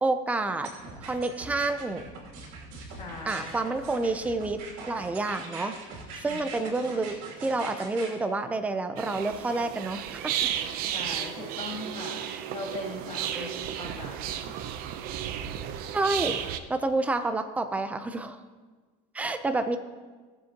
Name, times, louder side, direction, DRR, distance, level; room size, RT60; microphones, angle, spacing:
voice 1, 0.0-0.7 1.0-2.0 3.2-5.8 6.2-10.4 12.3-12.4 13.3-13.5 15.9-16.4 16.7-18.4 19.1-19.8, right 2 dB, 10° right, 8 dB, 0.5 m, -29 dB
sound 1, 0.6-8.1, right 3 dB, 80° right, 2.7 m, -42 dB
voice 2, 2.9-3.8 6.2-6.4 10.8-14.2 14.5-14.8, left 2 dB, 35° left, -3 dB, 2.8 m, -40 dB
sound 2, 9.0-16.6, right 10 dB, 55° right, 0.7 m, -33 dB
17.0 x 7.4 x 2.9 m, 1.4 s
cardioid pair, 145°, 18 cm